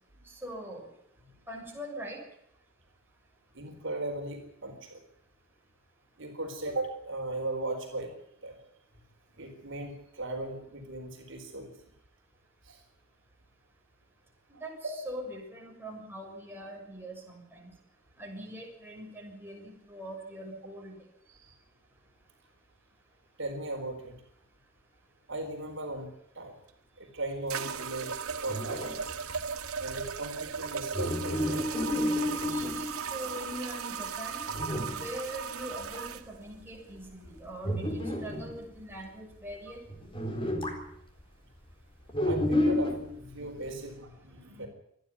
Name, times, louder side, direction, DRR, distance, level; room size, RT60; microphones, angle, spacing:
voice 1, 0.4-0.9 1.5-2.2 14.5-17.7 18.2-20.9 32.4-34.4 34.9-39.8, right 1 dB, 10° right, -1 dB, 6.6 m, -42 dB
voice 2, 3.5-5.0 6.2-8.1 8.4-8.6 9.4-11.7 12.7-12.8 14.5-14.6 21.3-21.5 23.4-24.1 25.3-26.1 26.3-26.5 27.0-28.2 28.4-29.1 29.8-31.7 42.2-44.7, right 2 dB, 60° right, 3 dB, 4.2 m, -37 dB
sound 1, 26.7-26.8 27.5-36.2, right 6 dB, 85° right, 1.5 m, -37 dB
sound 2, 28.3-32.9 33.5-33.6 34.0-34.1 34.5-35.1 35.4-35.5 35.7-36.1 36.5-36.8 37.3-38.6 39.5-39.6 39.9-40.9 42.1-43.2, left 1 dB, 25° left, 3.9 m, -31 dB
27.0 x 10.5 x 9.7 m, 0.74 s
head